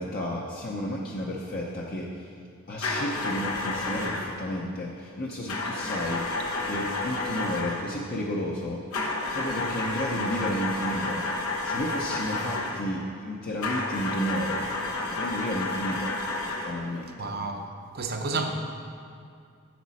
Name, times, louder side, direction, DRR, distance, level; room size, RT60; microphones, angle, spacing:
voice 1, 0.0-2.3 2.7-6.3 6.6-8.8 9.3-11.2 11.6-14.7 15.1-16.1 16.6-17.3, equal, 45° left, -2 dB, 0.7 m, -32 dB
sound 1, 2.8-4.4 5.5-7.9 8.9-12.9 13.6-16.8, left 2 dB, 90° left, 1.1 m, -31 dB
voice 2, 17.2-18.5, right 3 dB, 45° right, 4 dB, 0.7 m, -31 dB
10.5 x 7.3 x 4.2 m, 2.3 s
head